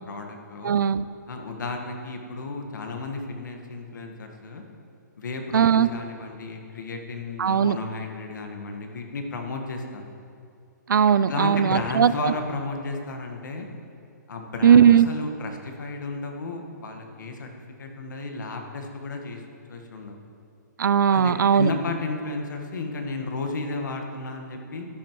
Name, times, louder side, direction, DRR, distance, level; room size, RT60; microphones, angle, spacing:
voice 1, 0.1-0.7 1.3-4.6 5.2-10.0 11.3-13.7 14.3-17.5 17.8-19.4 19.7-20.2 21.1-24.9, left 3 dB, 75° left, 3 dB, 1.5 m, -33 dB
voice 2, 0.6-1.1 5.5-5.9 7.4-7.8 10.9-12.3 14.6-15.1 20.8-21.7, right 8 dB, 85° right, 14 dB, 0.4 m, -18 dB
12.5 x 10.5 x 3.1 m, 2.5 s
hypercardioid pair, 155°, 10 cm